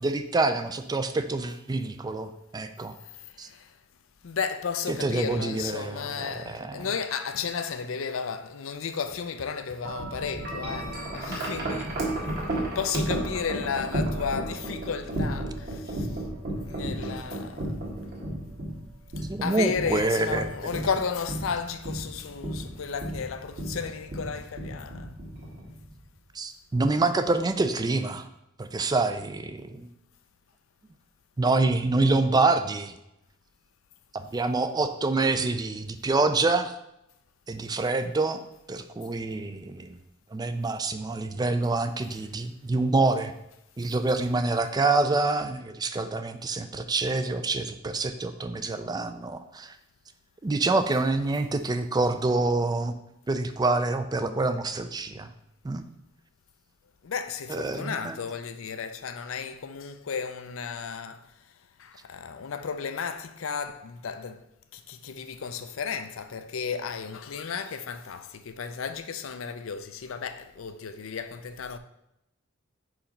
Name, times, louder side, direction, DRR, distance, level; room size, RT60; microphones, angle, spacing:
voice 1, 0.0-2.9 3.4-3.5 4.9-6.9 19.3-20.5 26.3-28.3 28.6-29.9 31.4-32.9 34.1-36.7 37.5-38.4 38.7-39.9 40.3-43.3 43.8-49.8 50.4-52.9 53.3-55.3 55.6-55.8 57.5-58.2, right 3 dB, 20° right, 0.4 m, -26 dB
voice 2, 3.2-3.7 4.2-11.9 12.5-16.2 16.6-17.8 19.2-25.2 57.0-61.3 61.8-64.4 64.7-71.8, left 6 dB, 80° left, 0.5 m, -33 dB
Wind chime, 9.9-26.0, right 1 dB, 55° right, 1.7 m, -33 dB
4.9 x 4.3 x 5.2 m
head